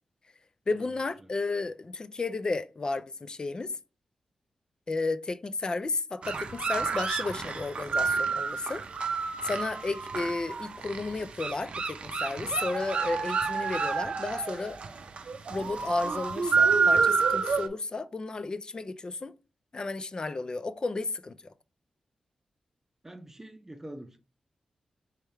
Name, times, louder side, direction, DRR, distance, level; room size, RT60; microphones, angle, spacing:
voice 1, 0.7-3.7 4.9-8.8 9.4-14.8 15.5-19.3 19.7-21.5, left 3 dB, 40° left, 0.4 m, -33 dB
sound 1, 6.2-17.7, right 5 dB, 65° right, 0.5 m, -29 dB
voice 2, 23.0-24.2, right 1 dB, 20° right, 0.7 m, -44 dB
3.5 x 3.4 x 4.3 m
cardioid pair, 70°, 2 cm